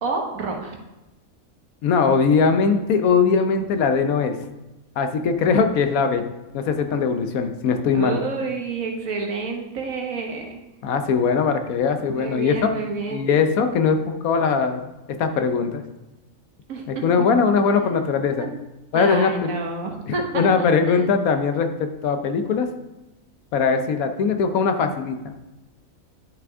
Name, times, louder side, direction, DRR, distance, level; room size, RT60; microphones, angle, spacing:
voice 1, 0.0-0.7 7.9-10.6 12.1-13.3 16.7-17.3 17.7-18.0 18.4-18.5 18.9-21.1, right 4 dB, 75° right, 1 dB, 1.6 m, -29 dB
voice 2, 1.8-4.4 5.0-6.2 6.5-8.2 10.8-12.7 13.1-14.8 15.2-15.8 16.9-18.5 18.9-19.5 20.1-22.7 23.5-25.2, left 5 dB, 85° left, 7 dB, 1.2 m, -20 dB
10.5 x 6.0 x 3.5 m, 1.0 s
omnidirectional pair, 1.5 m